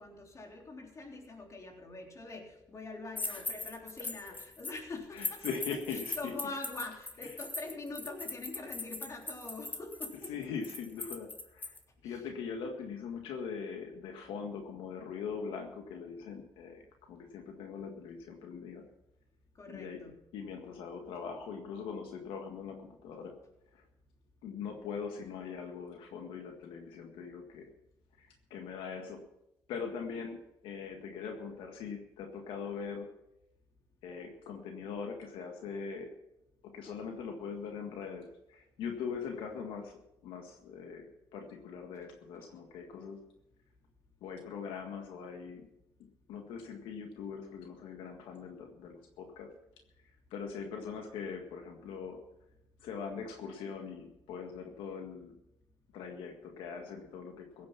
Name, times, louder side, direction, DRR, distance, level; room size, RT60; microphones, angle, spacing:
voice 1, 0.0-5.6 5.9-10.3 12.0-12.3 19.6-20.2, left 3 dB, 35° left, 1 dB, 3.5 m, -44 dB
sound 1, 3.2-4.8 5.2-11.8, left 2 dB, 20° left, 1.7 m, -40 dB
voice 2, 5.1-6.3 10.3-11.7 12.0-18.8 19.7-23.3 23.7-23.8 24.4-27.7 28.2-29.2 29.7-33.1 34.0-36.1 36.6-43.2 44.2-45.7 46.3-49.5 50.3-52.2 52.8-55.3 55.9-57.7, left 6 dB, 90° left, 4 dB, 1.7 m, -41 dB
16.0 x 9.5 x 5.8 m, 0.87 s
cardioid pair, 90°, 9 cm